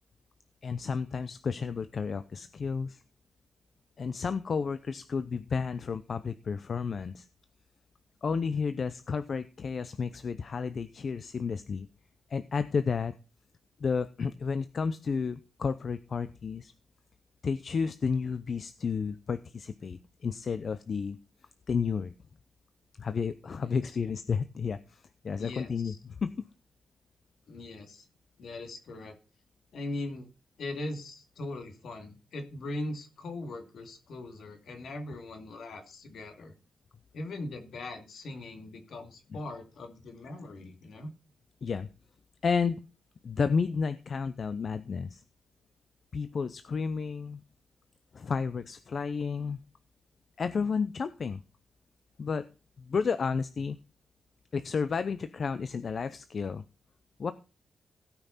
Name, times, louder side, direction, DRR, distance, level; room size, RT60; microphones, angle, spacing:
voice 1, 0.6-3.0 4.0-7.3 8.2-11.9 12.3-13.1 13.8-16.7 17.4-21.2 21.7-22.1 23.0-26.0 26.2-26.3 41.6-41.9 42.4-42.8 43.2-45.2 46.1-47.4 48.1-49.6 50.4-51.4 52.2-52.5 52.8-53.8 54.5-56.6 57.2-57.3, left 5 dB, 50° left, 12 dB, 0.6 m, -31 dB
voice 2, 25.4-26.0 27.5-28.1 28.4-29.1 29.7-30.3 30.6-36.5 37.1-41.1, left 2 dB, 75° left, 5 dB, 2.4 m, -40 dB
16.5 x 5.8 x 4.1 m, 0.33 s
cardioid pair, 95°, 0 cm